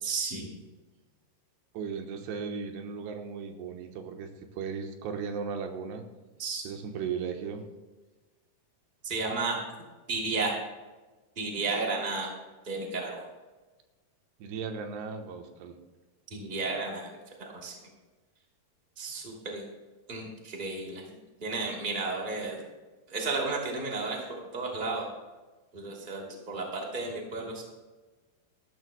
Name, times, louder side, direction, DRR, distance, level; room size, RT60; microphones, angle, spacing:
voice 1, 0.0-0.6 6.4-6.6 9.0-9.6 10.1-10.6 11.4-12.3 12.6-13.2 16.3-17.7 19.0-19.7 20.1-21.0 21.4-22.6 23.1-25.1 25.7-27.6, right 3 dB, 15° right, -1 dB, 1.8 m, -33 dB
voice 2, 1.7-6.1 6.6-7.7 14.4-15.8, right 6 dB, 90° right, 4 dB, 3.1 m, -36 dB
19.5 x 12.5 x 2.2 m, 1.2 s
omnidirectional pair, 4.7 m